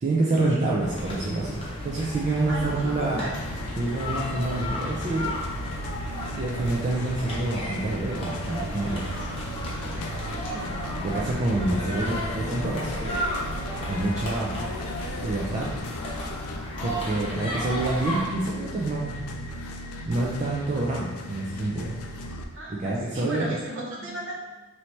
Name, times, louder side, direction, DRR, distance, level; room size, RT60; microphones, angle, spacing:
voice 1, 0.0-3.3 3.8-5.3 6.3-9.2 11.0-13.2 13.9-14.6 15.2-15.7 16.8-19.1 20.1-21.9 22.8-23.5, right 2 dB, 35° right, -4 dB, 0.4 m, -27 dB
sound 1, 0.8-18.2, equal, 25° left, 0.9 m, -33 dB
voice 2, 2.5-3.4 10.5-10.9 17.2-17.5 22.5-24.4, right 1 dB, 60° right, -4 dB, 0.9 m, -36 dB
sound 2, 2.6-22.4, left 1 dB, 80° left, 0.4 m, -37 dB
3.1 x 2.7 x 4.3 m, 1.2 s
head